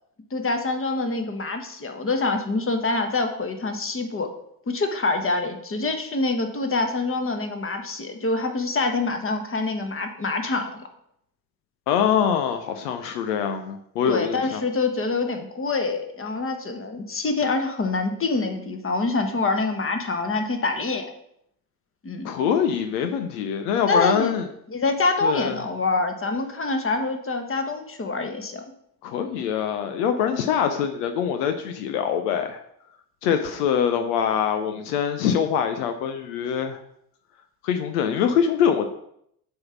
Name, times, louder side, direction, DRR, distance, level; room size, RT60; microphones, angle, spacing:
voice 1, 0.3-4.3 4.7-10.8 14.1-21.0 22.0-22.3 23.9-24.3 24.7-28.6, left 3 dB, 25° left, 6 dB, 1.3 m, -25 dB
voice 2, 11.9-14.6 22.2-24.5 25.2-25.6 29.0-32.6 33.2-36.8 37.6-38.9, left 8 dB, 75° left, 7 dB, 0.7 m, -24 dB
7.7 x 3.7 x 5.8 m, 0.73 s
hypercardioid pair, 55°, 47 cm